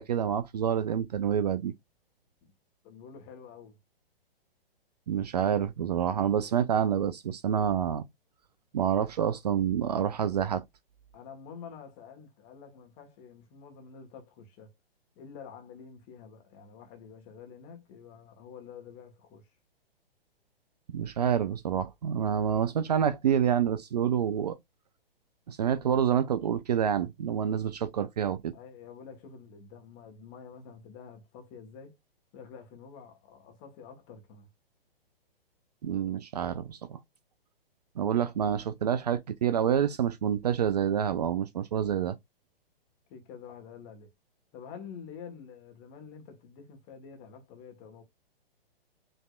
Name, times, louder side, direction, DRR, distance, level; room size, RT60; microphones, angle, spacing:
voice 1, 0.0-1.7 5.1-8.0 8.7-10.6 20.9-24.6 25.5-28.5 35.8-37.0 38.0-42.2, right 9 dB, 45° right, 0.5 m, -27 dB
voice 2, 2.8-3.8 9.8-10.0 11.1-14.7 15.1-19.5 28.5-32.0 32.3-34.5 41.8-42.1 43.1-44.1 44.5-48.0, left 6 dB, 25° left, 1.4 m, -48 dB
5.2 x 3.3 x 2.4 m
figure-of-eight pair, 120°, 30 cm